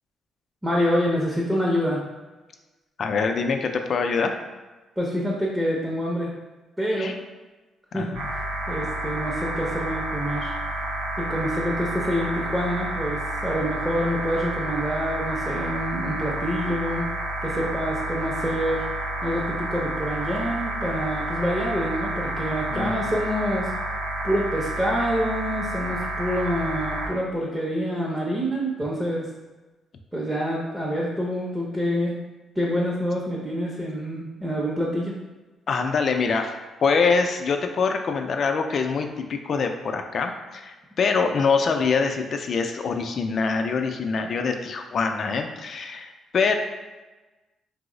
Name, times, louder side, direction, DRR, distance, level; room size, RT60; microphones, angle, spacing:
voice 1, 0.6-2.0 5.0-6.3 6.8-7.1 7.9-8.1 8.7-10.5 11.2-17.1 17.4-18.9 19.2-23.7 24.2-29.3 30.1-32.2 32.6-35.1, equal, 10° right, -4 dB, 0.6 m, -26 dB
voice 2, 3.0-4.4 6.9-7.1 7.9-8.3 22.7-23.0 35.7-36.5 36.8-46.5, left 5 dB, 55° left, 5 dB, 0.3 m, -24 dB
sound 1, 8.1-27.1, right 1 dB, 90° right, 0.7 m, -30 dB
2.9 x 2.0 x 3.7 m, 1.2 s
cardioid pair, 90°, 0 cm